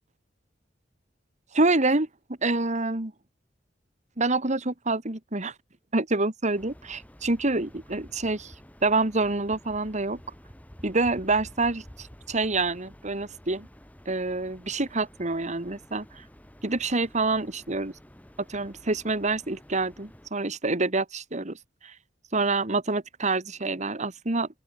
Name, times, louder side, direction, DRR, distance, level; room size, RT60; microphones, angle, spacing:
voice 1, 1.5-2.1 2.4-3.1 4.2-5.5 5.9-8.5 8.8-10.2 10.8-13.7 14.1-16.2 16.6-17.9 18.5-21.6 21.8-21.9 22.3-24.5, right 3 dB, 40° right, 2.1 m, -27 dB
sound 1, 6.5-20.3, equal, 10° left, 3.2 m, -50 dB
open air
head